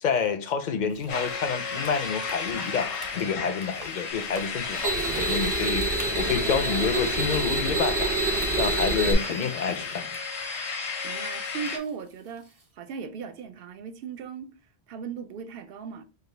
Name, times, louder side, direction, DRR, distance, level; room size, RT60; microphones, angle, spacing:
voice 1, 0.0-2.9 3.2-8.2 8.6-10.1, left 6 dB, 55° left, 0.6 m, -28 dB
sound 1, 0.9-6.1 7.4-7.6 8.4-12.7, right 2 dB, 35° right, 0.8 m, -48 dB
sound 2, 1.1-11.8, left 5 dB, 90° left, 1.0 m, -33 dB
sound 3, 4.3-9.1, right 3 dB, 80° right, 1.1 m, -28 dB
voice 2, 11.0-12.5 12.7-14.5 14.9-16.0, right 6 dB, 65° right, 0.7 m, -37 dB
5.0 x 2.3 x 3.2 m
omnidirectional pair, 1.1 m